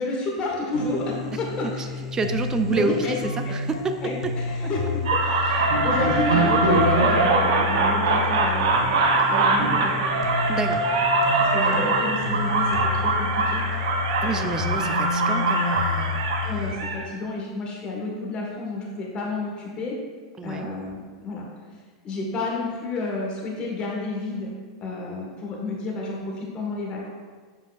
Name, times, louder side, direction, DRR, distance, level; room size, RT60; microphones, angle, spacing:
voice 1, 0.0-2.0 2.7-3.1 3.4-3.5 4.0-9.9 11.3-13.6 14.7-14.8 16.4-20.0 20.4-21.5 22.0-24.5 24.8-27.1, left 2 dB, 35° left, -2 dB, 1.4 m, -30 dB
sound 1, 0.7-16.7, left 5 dB, 85° left, 0.7 m, -30 dB
voice 2, 2.1-4.4 10.5-10.9 14.2-16.2 20.4-20.7, right 4 dB, 20° right, 8 dB, 0.5 m, -28 dB
sound 2, 5.1-17.0, right 3 dB, 65° right, 0.8 m, -22 dB
7.5 x 5.3 x 2.4 m, 1.5 s
hypercardioid pair, 95°, 3 cm